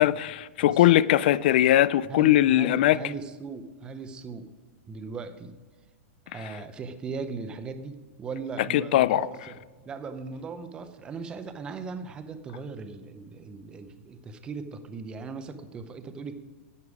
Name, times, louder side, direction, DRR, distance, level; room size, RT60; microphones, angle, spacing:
voice 1, 0.0-3.0 8.7-9.3, left 13 dB, 45° left, 0.3 m, -20 dB
voice 2, 2.1-4.5 4.9-5.5 6.3-9.4 9.8-16.3, right 4 dB, 10° right, 0.6 m, -38 dB
11.0 x 8.2 x 4.8 m
supercardioid pair, 170°, 7 cm